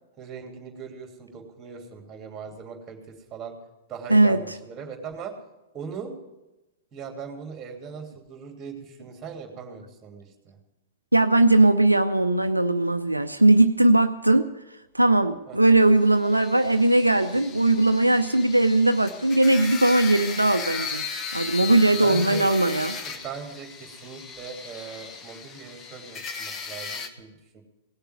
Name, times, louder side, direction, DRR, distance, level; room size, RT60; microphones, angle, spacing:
voice 1, 0.2-3.5 3.9-5.3 5.7-6.1 6.9-10.6 15.5-15.8 21.9-22.5 23.0-27.6, right 6 dB, 20° right, 3 dB, 2.9 m, -40 dB
voice 2, 11.1-14.5 14.9-21.0 21.3-23.0, right 2 dB, 85° right, 8 dB, 0.5 m, -19 dB
sound 1, 16.1-27.1, left 5 dB, 25° left, 1.2 m, -36 dB
18.0 x 6.8 x 9.4 m, 1.0 s
figure-of-eight pair, 100°, 0 cm